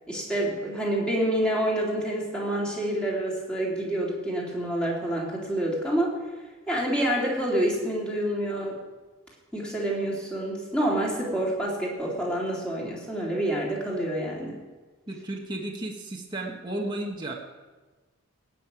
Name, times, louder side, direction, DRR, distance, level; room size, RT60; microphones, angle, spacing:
voice 1, 0.1-6.1 6.7-8.8 9.5-14.6, right 1 dB, 5° left, -4 dB, 3.5 m, -27 dB
voice 2, 15.1-17.3, right 1 dB, 20° right, -1 dB, 1.4 m, -33 dB
17.0 x 6.6 x 9.1 m, 1.3 s
head